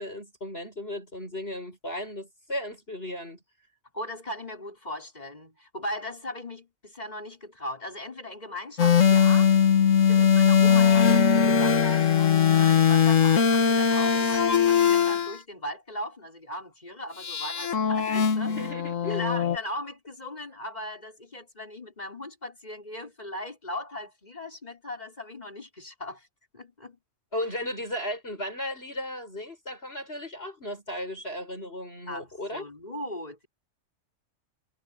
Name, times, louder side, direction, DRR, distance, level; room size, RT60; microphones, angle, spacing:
voice 1, 0.0-3.4 18.5-19.2 27.3-32.6, left 1 dB, 50° left, 7.7 m, -35 dB
voice 2, 3.9-9.5 10.1-18.7 19.1-26.3 26.5-27.0 27.3-27.4 32.1-33.5, left 1 dB, 30° left, 4.8 m, -38 dB
sound 1, 8.8-15.4 17.2-19.6, left 7 dB, 75° left, 1.8 m, -20 dB
omnidirectional pair, 1.4 m